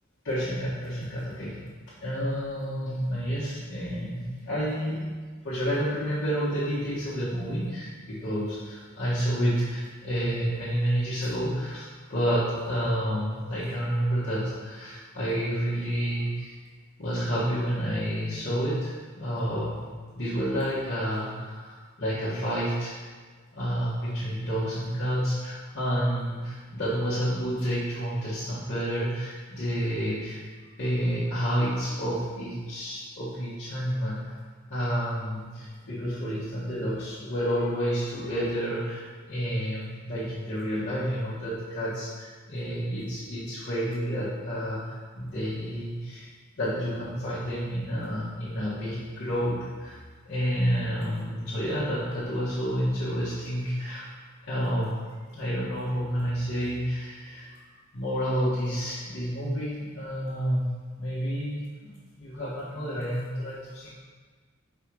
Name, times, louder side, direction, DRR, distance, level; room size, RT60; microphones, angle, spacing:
voice 1, 0.2-1.6 2.0-5.1 5.4-16.5 17.0-19.8 20.1-23.0 23.5-30.4 30.8-34.4 34.7-46.3 46.5-54.1 54.5-55.0 55.3-57.6 57.9-60.7 61.0-61.9 62.2-63.9, equal, 55° left, -12 dB, 1.5 m, -29 dB
4.9 x 4.5 x 4.8 m, 1.5 s
head